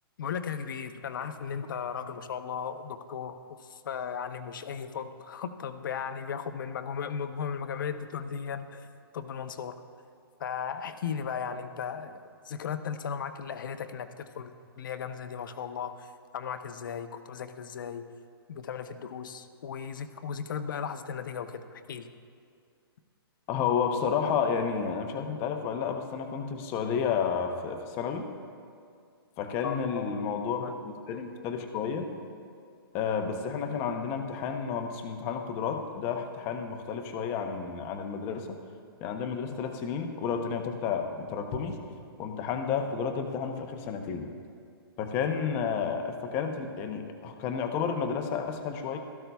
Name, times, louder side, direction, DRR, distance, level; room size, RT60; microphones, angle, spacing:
voice 1, 0.2-3.4 3.7-8.8 9.1-9.7 10.4-16.1 16.3-18.0 18.5-22.1 29.6-30.3 30.6-30.7, left 7 dB, 55° left, 9 dB, 0.7 m, -36 dB
voice 2, 23.5-28.3 29.4-32.1 32.9-38.6 39.0-41.8 42.2-44.3 45.0-49.0, left 6 dB, 20° left, 5 dB, 0.6 m, -31 dB
16.5 x 13.5 x 2.3 m, 2.3 s
hypercardioid pair, 165°, 13 cm